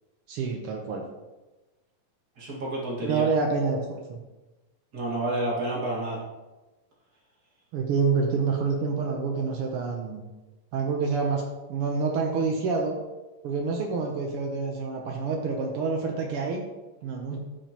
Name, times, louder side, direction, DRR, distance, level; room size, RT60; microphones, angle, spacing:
voice 1, 0.3-1.0 3.0-3.8 4.1-4.2 7.7-10.2 10.7-11.4 11.7-13.0 13.4-16.6 17.0-17.4, right 4 dB, 85° right, 1 dB, 1.2 m, -27 dB
voice 2, 2.4-3.3 4.9-6.2, right 1 dB, 35° right, -4 dB, 2.0 m, -29 dB
14.0 x 5.1 x 3.0 m, 1.1 s
omnidirectional pair, 3.7 m